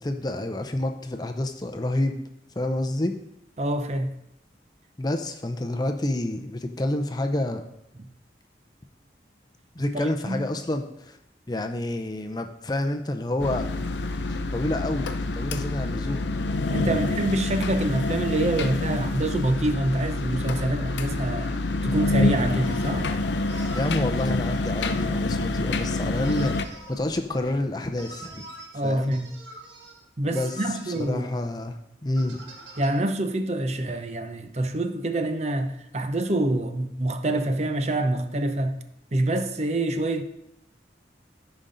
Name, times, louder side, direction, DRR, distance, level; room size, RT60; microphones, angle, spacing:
voice 1, 0.0-2.2 2.6-3.2 5.0-7.6 9.7-11.2 11.5-13.7 14.3-16.3 16.9-17.1 23.7-28.4 28.8-29.1 30.3-32.4, left 1 dB, 20° left, 0.6 m, -28 dB
voice 2, 3.6-4.1 8.0-8.1 9.9-10.5 16.7-21.6 21.8-23.1 28.7-29.3 30.2-31.3 32.8-38.7 39.1-40.2, right 1 dB, 35° right, 0.6 m, -26 dB
sound 1, 13.4-26.6, left 2 dB, 80° left, 0.6 m, -27 dB
sound 2, 22.1-22.2 22.6-23.0 23.5-24.0 24.8-25.1 26.2-27.0 28.0-28.7 29.1-30.0 30.3-31.1 32.2-32.9, right 1 dB, 80° right, 1.6 m, -44 dB
sound 3, 22.6-27.8, equal, 55° left, 1.0 m, -45 dB
14.0 x 5.2 x 3.9 m
head